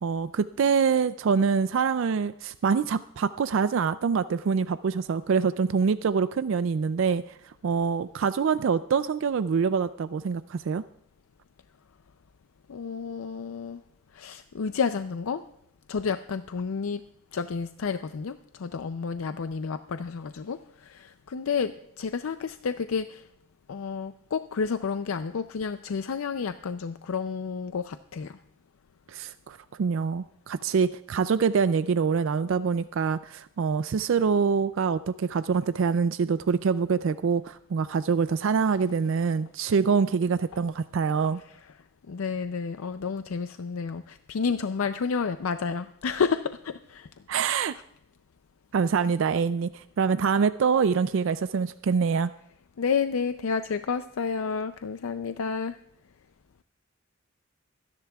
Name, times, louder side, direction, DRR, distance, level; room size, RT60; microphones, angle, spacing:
voice 1, 0.0-10.8 29.1-41.4 47.3-47.7 48.7-52.3, right 5 dB, 70° right, 13 dB, 0.4 m, -25 dB
voice 2, 12.7-13.8 14.1-15.4 15.9-17.0 17.3-23.3 23.7-28.4 42.1-47.1 52.8-55.8, left 5 dB, 85° left, 10 dB, 0.5 m, -30 dB
25.0 x 10.5 x 2.3 m, 0.75 s
head